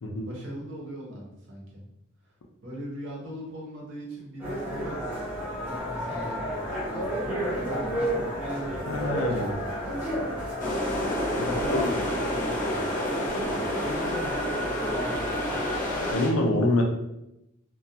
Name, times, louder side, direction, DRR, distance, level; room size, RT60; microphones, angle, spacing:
voice 1, 0.2-1.8 2.2-2.3 2.6-10.0 11.3-13.0 13.4-15.6, equal, 60° right, -3 dB, 0.8 m, -41 dB
sound 1, 4.4-16.1, equal, 10° right, 0.7 m, -31 dB
voice 2, 8.9-9.5 11.7-12.0 16.1-16.8, left 2 dB, 90° left, 2 dB, 0.5 m, -25 dB
sound 2, 10.6-16.3, left 1 dB, 40° left, 0.6 m, -30 dB
2.3 x 2.2 x 2.7 m, 0.85 s
head